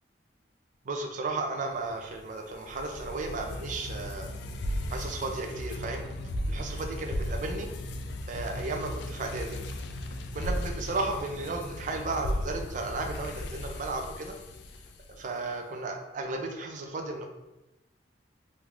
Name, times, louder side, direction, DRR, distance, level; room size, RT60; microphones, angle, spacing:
voice 1, 0.9-4.3 4.9-6.1 6.5-7.7 8.3-9.6 10.3-14.3 15.1-17.3, right 3 dB, 45° right, 3 dB, 0.4 m, -34 dB
sound 1, 1.9-15.3, left 1 dB, 70° left, 0.3 m, -36 dB
3.2 x 3.0 x 2.4 m, 0.97 s
head